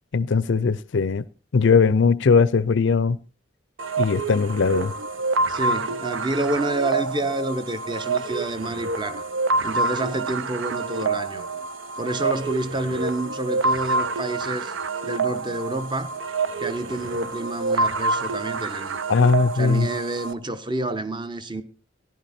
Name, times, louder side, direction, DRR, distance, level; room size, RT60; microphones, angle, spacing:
voice 1, 0.1-1.3 1.5-3.2 4.0-4.9 19.1-19.9, left 5 dB, 65° left, 0.5 m, -19 dB
sound 1, 3.8-20.3, right 3 dB, 75° right, 0.8 m, -27 dB
voice 2, 5.5-9.3 9.6-11.4 12.0-14.7 15.0-16.1 16.6-19.0 19.6-21.6, right 2 dB, 25° right, 1.0 m, -28 dB
15.0 x 11.0 x 4.3 m
head